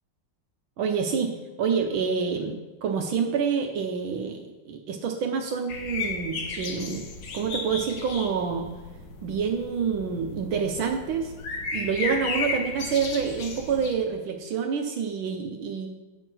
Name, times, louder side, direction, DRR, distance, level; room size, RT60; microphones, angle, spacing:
voice 1, 0.8-7.0 7.3-8.7 9.2-11.3 11.7-15.9, right 6 dB, 75° right, 4 dB, 1.5 m, -27 dB
sound 1, 5.7-13.9, left 4 dB, 65° left, 1.5 m, -34 dB
8.9 x 6.2 x 6.1 m, 1.1 s
omnidirectional pair, 2.3 m